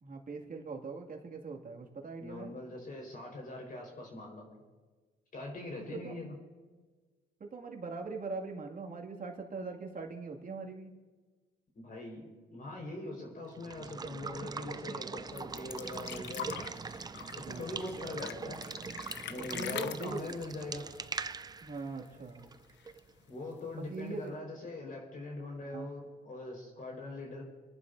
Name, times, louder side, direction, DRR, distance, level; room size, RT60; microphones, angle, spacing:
voice 1, 0.0-2.6 5.9-6.1 7.4-10.9 17.4-17.7 19.4-20.3 21.6-22.4 23.7-24.4 25.6-25.9, right 4 dB, 45° right, 1 dB, 2.2 m, -41 dB
voice 2, 2.2-4.6 5.3-6.4 11.7-16.7 17.3-18.6 19.3-20.8 23.3-27.4, left 2 dB, 45° left, 0 dB, 4.6 m, -42 dB
Water / Water tap faucet / Liquid, 13.5-23.1, right 5 dB, 20° right, 0.4 m, -42 dB
sound 1, 15.4-21.8 22.1-22.2 22.5-23.2 24.0-24.1, left 9 dB, 65° left, 0.6 m, -43 dB
29.0 x 11.0 x 2.7 m, 1.3 s
cardioid pair, 90°, 20 cm